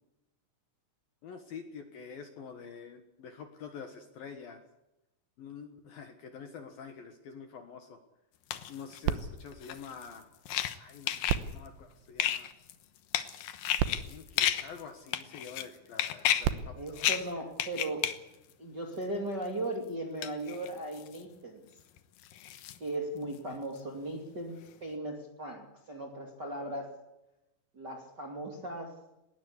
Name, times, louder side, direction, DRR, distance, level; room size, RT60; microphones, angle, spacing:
voice 1, 1.2-4.6 5.4-8.0 8.7-10.2 10.8-12.5 13.9-17.1 23.5-23.6, left 6 dB, 60° left, 6 dB, 2.7 m, -47 dB
sound 1, 8.5-9.1 9.5-11.5 12.2-14.8 15.1-15.7 16.0-16.5 16.9-17.3 17.6-18.2 18.5-18.6 20.2-21.2 21.8-22.8 23.3-23.8 24.7-24.8, left 11 dB, 80° left, 2.0 m, -32 dB
sound 2, 9.0-10.7 11.2-12.8 13.5-13.6 13.8-15.3 16.2-18.0 18.7-18.8, right 10 dB, 75° right, 3.1 m, -37 dB
voice 2, 16.7-18.1 18.6-21.7 22.8-26.9 27.7-29.0, right 1 dB, 30° right, 1 dB, 2.1 m, -37 dB
20.5 x 19.0 x 8.3 m, 0.90 s
omnidirectional pair, 5.7 m